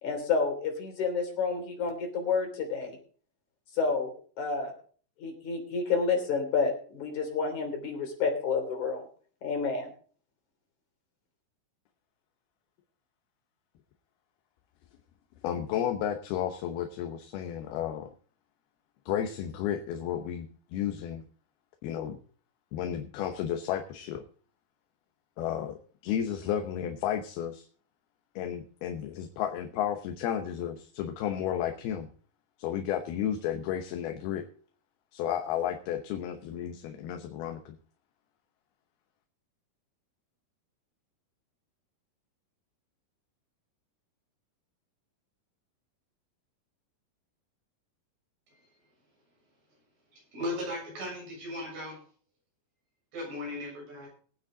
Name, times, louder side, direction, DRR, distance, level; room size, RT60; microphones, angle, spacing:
voice 1, 0.0-3.0 3.8-4.1 4.4-4.7 5.2-9.1 9.4-9.9, left 5 dB, 50° left, 3 dB, 4.3 m, -29 dB
voice 2, 15.4-18.1 19.1-21.2 21.8-22.2 22.7-24.2 25.4-27.6 28.4-32.1 32.6-34.5 35.1-37.8, left 10 dB, 75° left, 5 dB, 2.8 m, -32 dB
voice 3, 50.3-52.0 53.1-54.1, left 1 dB, 70° right, -2 dB, 8.9 m, -36 dB
21.5 x 9.1 x 3.8 m, 0.44 s
omnidirectional pair, 4.7 m